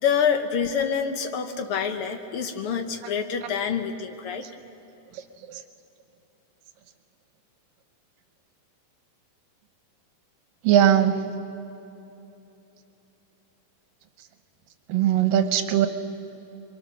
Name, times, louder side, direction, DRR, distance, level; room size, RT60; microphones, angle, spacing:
voice 1, 0.0-4.4, left 7 dB, 65° left, 6 dB, 1.4 m, -26 dB
voice 2, 5.1-5.6 10.6-11.3 14.9-15.9, right 10 dB, 85° right, 8 dB, 2.7 m, -21 dB
26.5 x 23.5 x 6.4 m, 2.9 s
omnidirectional pair, 3.8 m